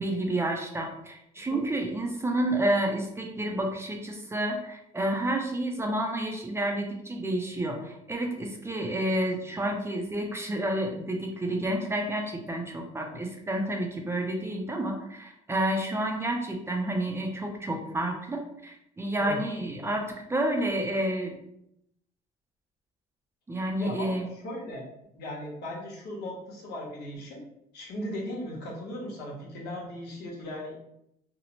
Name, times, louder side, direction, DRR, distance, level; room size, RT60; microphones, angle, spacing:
voice 1, 0.0-21.4 23.5-24.2, right 1 dB, 15° right, 1 dB, 0.4 m, -30 dB
voice 2, 23.8-24.9 25.1-27.4 27.7-30.8, left 1 dB, 80° left, -3 dB, 1.0 m, -37 dB
2.7 x 2.0 x 2.9 m, 0.77 s
cardioid pair, 110°, 17 cm